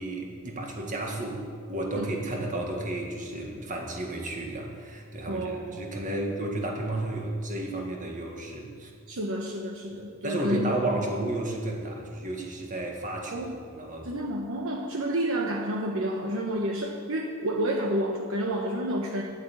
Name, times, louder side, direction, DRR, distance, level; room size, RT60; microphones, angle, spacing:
voice 1, 0.0-1.4 1.7-8.9 9.9-13.5 13.7-14.1, right 1 dB, 35° right, 1 dB, 1.9 m, -32 dB
voice 2, 5.3-5.8 9.1-11.0 13.3-13.5 14.0-19.2, right 1 dB, 60° right, 0 dB, 1.1 m, -30 dB
11.5 x 8.3 x 8.6 m, 2.1 s
head